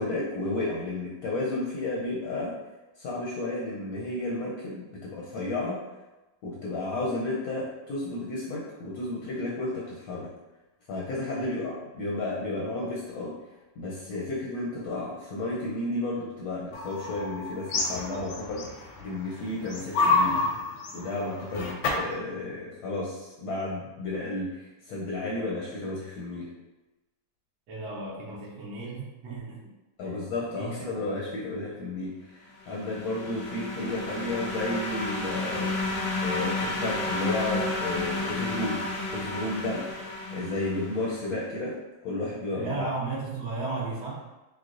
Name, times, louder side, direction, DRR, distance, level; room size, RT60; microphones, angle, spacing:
voice 1, 0.0-2.5 3.0-5.8 6.4-10.3 10.9-13.3 13.8-20.4 20.9-26.5 30.0-38.8 39.1-39.8 40.3-41.7 42.0-42.9, left 2 dB, 70° left, -5 dB, 0.9 m, -32 dB
sound 1, 16.7-19.1 19.5-22.1, left 3 dB, 90° left, 1.4 m, -28 dB
voice 2, 27.7-29.7 30.0-30.3 30.6-31.0 42.5-44.2, right 3 dB, 65° right, -6 dB, 1.2 m, -35 dB
sound 2, 32.6-41.2, left 2 dB, 45° left, 0.7 m, -32 dB
4.6 x 2.0 x 2.5 m, 1.1 s
omnidirectional pair, 2.1 m